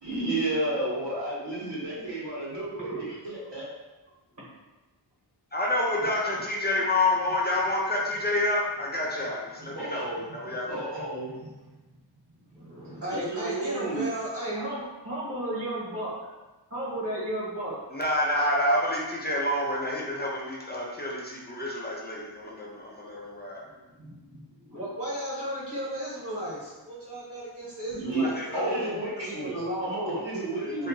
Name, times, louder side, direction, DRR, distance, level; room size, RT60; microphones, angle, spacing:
voice 1, 0.0-3.6 9.7-10.2 10.7-11.3 13.1-14.0 27.9-28.2 28.5-30.9, right 2 dB, 75° right, -7 dB, 1.4 m, -31 dB
voice 2, 5.5-10.0 10.3-10.7 17.9-23.7 28.3-28.5 30.6-30.9, left 1 dB, 25° left, -3 dB, 0.5 m, -28 dB
voice 3, 12.5-16.1 16.7-17.8 23.6-30.3, right 1 dB, 45° right, -8 dB, 1.2 m, -34 dB
2.7 x 2.5 x 3.7 m, 1.1 s
wide cardioid pair, 105°, 43 cm